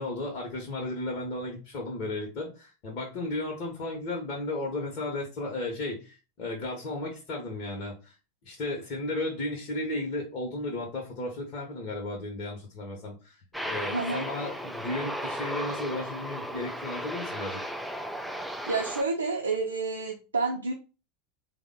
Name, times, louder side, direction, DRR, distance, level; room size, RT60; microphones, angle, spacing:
voice 1, 0.0-8.1 8.4-13.4 13.6-17.6, left 2 dB, 45° left, -2 dB, 0.9 m, -34 dB
Aircraft, 13.5-19.0, equal, ahead, 0.4 m, -35 dB
voice 2, 13.9-14.2 18.7-20.7, right 3 dB, 80° right, 1 dB, 0.5 m, -29 dB
3.5 x 2.1 x 3.6 m, 0.32 s
figure-of-eight pair, 85°, 0 cm